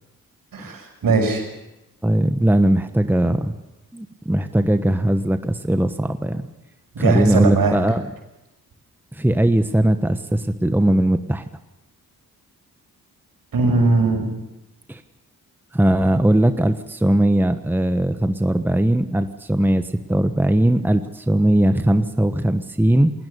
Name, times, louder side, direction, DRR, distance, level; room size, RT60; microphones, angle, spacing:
voice 1, 0.5-1.5 7.0-7.8 13.5-14.3, right 3 dB, 70° right, 3 dB, 6.2 m, -19 dB
voice 2, 2.0-3.5 3.9-6.4 7.0-8.0 9.1-11.4 14.9-15.0 15.7-23.1, right 1 dB, 5° right, 9 dB, 1.2 m, -19 dB
20.5 x 19.5 x 6.9 m, 0.99 s
supercardioid pair, 50°, 36 cm